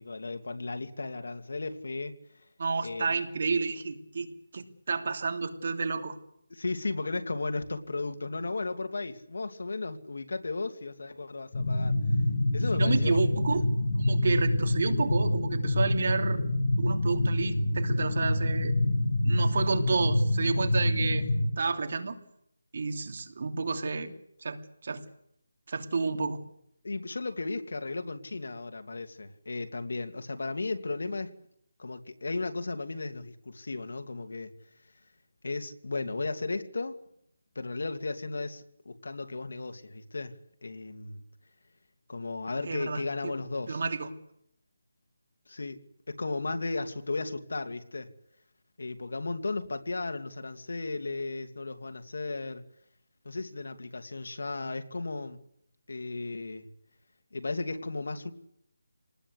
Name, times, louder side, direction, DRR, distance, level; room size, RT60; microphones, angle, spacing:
voice 1, 0.0-2.1 2.8-3.1 6.5-12.0 12.5-13.2 26.8-31.3 31.8-34.5 35.4-37.0 37.5-41.2 42.1-43.8 45.5-45.8 46.1-48.1 48.8-52.6 53.2-55.4 55.9-56.7 57.3-58.3, left 3 dB, 65° left, 8 dB, 2.6 m, -35 dB
voice 2, 2.6-4.3 4.5-6.2 12.7-13.6 14.0-16.4 16.8-18.7 19.2-21.3 21.6-22.2 22.7-24.1 24.4-25.0 25.7-26.4 42.6-43.3 43.7-44.1, right 4 dB, 45° right, 6 dB, 2.9 m, -30 dB
sound 1, 11.5-21.5, left 1 dB, 40° left, 4.0 m, -26 dB
27.0 x 19.5 x 8.2 m, 0.74 s
figure-of-eight pair, 175°, 0 cm